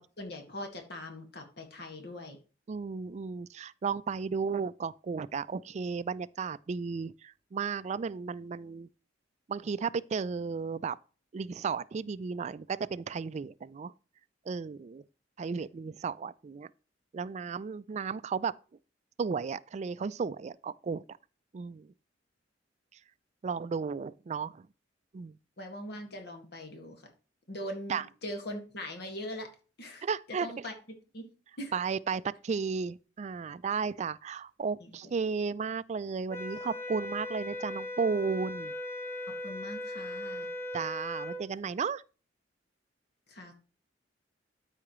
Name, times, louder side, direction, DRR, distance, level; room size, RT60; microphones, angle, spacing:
voice 1, 0.0-2.4 25.6-27.0 27.5-29.5 29.8-30.1 30.4-30.7 31.1-31.3 31.6-31.7 34.8-34.9 39.4-40.5 43.3-43.5, left 1 dB, 60° left, 1.8 m, -41 dB
voice 2, 2.7-8.9 9.5-11.0 11.3-13.9 14.5-15.0 15.4-16.7 17.1-18.5 19.2-21.0 21.5-21.9 22.9-23.0 23.4-24.7 25.1-25.4 27.9-28.1 30.0-30.6 31.7-38.7 40.7-42.0, right 5 dB, 40° right, 0.3 m, -34 dB
sound 1, 36.3-41.5, left 1 dB, 15° left, 1.1 m, -38 dB
13.0 x 4.9 x 3.1 m
head